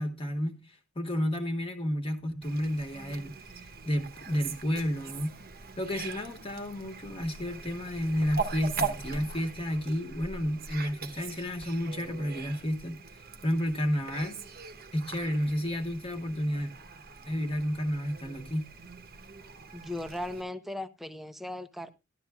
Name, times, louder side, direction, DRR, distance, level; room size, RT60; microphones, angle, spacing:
voice 1, 0.0-5.4 5.8-13.0 13.4-14.4 14.9-16.7 17.2-18.7, equal, 30° left, 1.3 m, -31 dB
Fowl, 2.4-20.4, right 5 dB, 50° right, 0.9 m, -41 dB
voice 2, 19.7-21.9, left 1 dB, ahead, 0.6 m, -37 dB
14.5 x 11.5 x 2.3 m
head